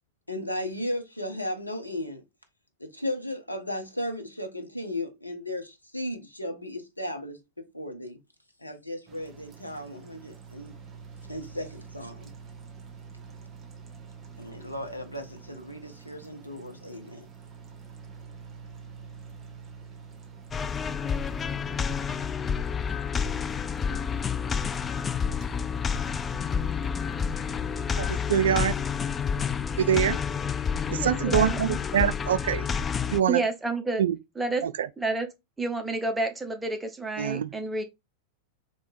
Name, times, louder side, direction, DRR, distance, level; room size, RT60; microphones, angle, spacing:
voice 1, 0.3-2.2 2.8-8.2 8.6-10.7 11.3-12.3 14.4-17.3, left 1 dB, 90° left, 0.9 m, -35 dB
sound 1, 9.1-28.1, right 6 dB, 25° right, 1.3 m, -47 dB
sound 2, 20.5-33.2, left 6 dB, 20° left, 0.3 m, -29 dB
voice 2, 28.0-28.7 29.8-30.2 30.9-32.7 33.1-33.4 34.0-34.2 34.6-34.9 37.2-37.5, right 9 dB, 65° right, 0.4 m, -25 dB
voice 3, 31.0-31.8 33.3-34.0 34.4-34.6 35.0-35.3 35.6-37.8, right 3 dB, 10° right, 0.9 m, -29 dB
3.4 x 3.1 x 4.3 m
figure-of-eight pair, 90°, 0 cm